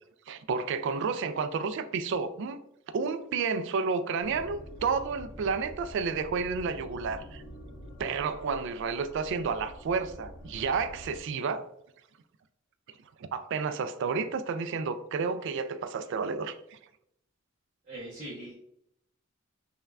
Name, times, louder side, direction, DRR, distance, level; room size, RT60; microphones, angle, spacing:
voice 1, 0.3-2.6 2.9-7.4 8.0-11.7 13.3-16.8, right 5 dB, 60° right, 0.3 m, -31 dB
sound 1, 4.2-11.2, equal, 75° left, 0.8 m, -46 dB
voice 2, 17.9-18.5, right 1 dB, 40° right, 0.8 m, -41 dB
5.4 x 2.2 x 2.3 m
head